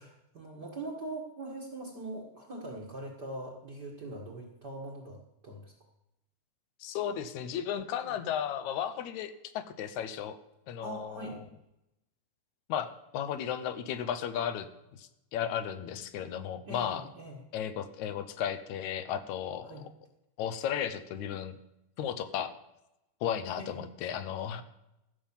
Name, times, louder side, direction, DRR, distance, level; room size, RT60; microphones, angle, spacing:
voice 1, 0.0-5.7 8.0-8.2 10.8-11.4 16.6-17.4 19.6-19.8 23.6-23.7, right 2 dB, 40° right, -2 dB, 1.7 m, -42 dB
voice 2, 6.8-10.4 10.7-11.5 12.7-14.7 14.9-17.0 17.5-19.8 20.4-21.6 22.0-22.5 23.2-24.6, left 9 dB, 75° left, 11 dB, 2.0 m, -34 dB
15.0 x 5.5 x 7.2 m, 0.90 s
omnidirectional pair, 3.8 m